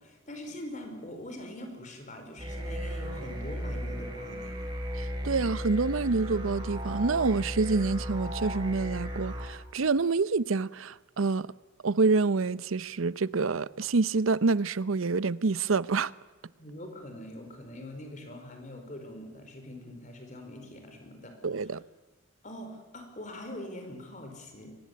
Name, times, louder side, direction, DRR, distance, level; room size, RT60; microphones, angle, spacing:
voice 1, 0.0-4.7 16.6-21.4 22.4-24.7, left 1 dB, 40° left, 5.1 m, -43 dB
sound 1, 2.4-9.5, equal, 25° right, 6.9 m, -35 dB
voice 2, 5.0-11.5 11.8-16.1 21.4-21.8, right 4 dB, 85° right, 0.7 m, -27 dB
24.0 x 19.5 x 8.6 m
head